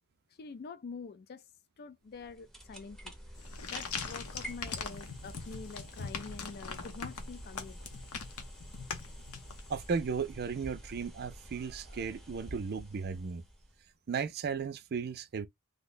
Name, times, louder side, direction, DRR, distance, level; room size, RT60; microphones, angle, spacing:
voice 1, 0.4-1.4 1.8-3.1 3.7-7.8, left 4 dB, 45° left, 0.4 m, -46 dB
sound 1, 2.1-13.9, equal, ahead, 0.7 m, -48 dB
sound 2, 3.4-9.9, left 5 dB, 75° left, 0.7 m, -42 dB
voice 2, 9.7-13.4 14.1-15.5, right 5 dB, 45° right, 0.4 m, -35 dB
2.7 x 2.2 x 3.7 m
head